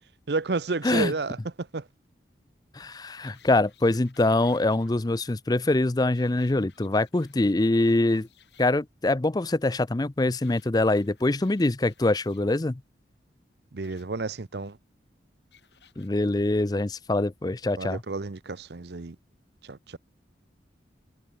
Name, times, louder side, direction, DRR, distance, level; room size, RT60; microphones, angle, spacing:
voice 1, 0.3-1.8 13.7-14.8 17.8-19.2 19.6-20.0, right 3 dB, 65° right, 0.8 m, -31 dB
voice 2, 2.7-8.3 8.6-12.8 16.0-18.0, left 2 dB, 20° left, 0.5 m, -24 dB
sound 1, 3.2-4.9 6.0-8.7 10.4-12.4 13.8-14.0 15.5-16.1 16.8-16.9, left 8 dB, 70° left, 6.7 m, -59 dB
head